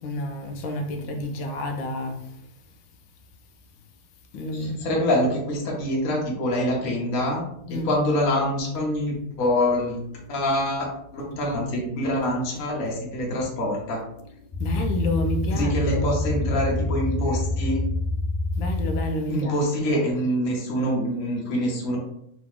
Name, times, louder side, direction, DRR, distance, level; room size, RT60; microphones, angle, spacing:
voice 1, 0.0-2.4 4.3-4.9 7.7-7.9 14.6-16.2 18.6-19.6 19.9-20.0, left 1 dB, 75° left, 1.3 m, -30 dB
voice 2, 4.5-7.4 7.8-10.0 10.3-10.9 11.1-14.0 15.5-17.8 19.3-22.0, left 1 dB, 45° left, 1.3 m, -25 dB
sound 1, 5.4-19.0, left 2 dB, 20° left, 1.2 m, -29 dB
3.8 x 3.0 x 3.6 m
omnidirectional pair, 2.2 m